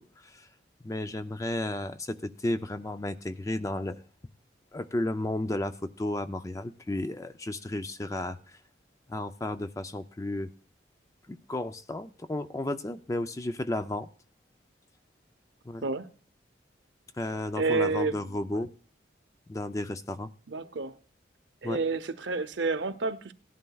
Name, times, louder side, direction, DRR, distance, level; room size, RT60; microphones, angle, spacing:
voice 1, 0.8-4.0 4.7-8.6 9.1-10.5 11.3-14.1 15.7-15.8 17.2-18.7 19.5-20.3 21.6-21.8, left 1 dB, 15° left, 0.4 m, -33 dB
voice 2, 17.5-18.2 20.5-20.9 21.6-23.3, right 3 dB, 70° right, 0.7 m, -29 dB
17.5 x 11.0 x 2.3 m
head